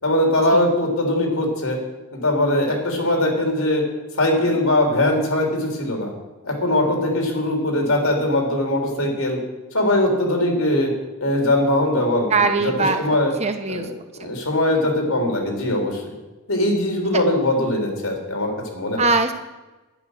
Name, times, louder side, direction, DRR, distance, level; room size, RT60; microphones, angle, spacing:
voice 1, 0.0-1.8 2.1-3.8 4.2-6.1 6.4-9.4 9.7-10.9 11.2-12.3 12.6-12.7 13.0-13.3 13.7-16.1 16.5-19.0, left 1 dB, 75° left, 1 dB, 3.6 m, -21 dB
voice 2, 12.3-13.0 13.4-13.9 19.0-19.4, right 4 dB, 30° right, 7 dB, 1.1 m, -20 dB
11.0 x 10.5 x 6.8 m, 1.1 s
head